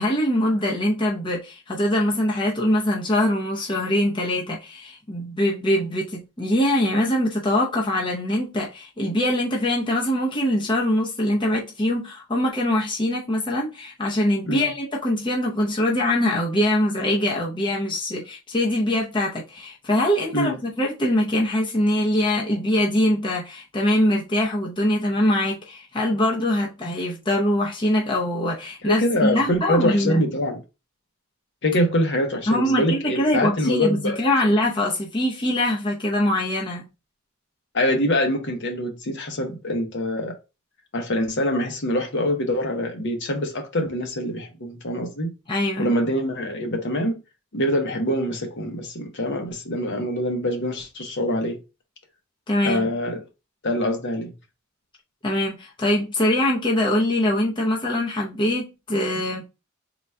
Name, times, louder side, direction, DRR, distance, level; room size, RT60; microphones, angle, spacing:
voice 1, 0.0-30.2 32.5-36.8 45.5-45.9 52.5-52.9 55.2-59.4, left 1 dB, 20° left, 0.7 m, -23 dB
voice 2, 28.8-30.6 31.6-34.5 37.7-40.3 40.9-45.3 45.8-47.2 47.5-51.6 52.6-53.2 53.6-54.3, equal, 55° left, 0.8 m, -24 dB
3.9 x 2.3 x 4.3 m
head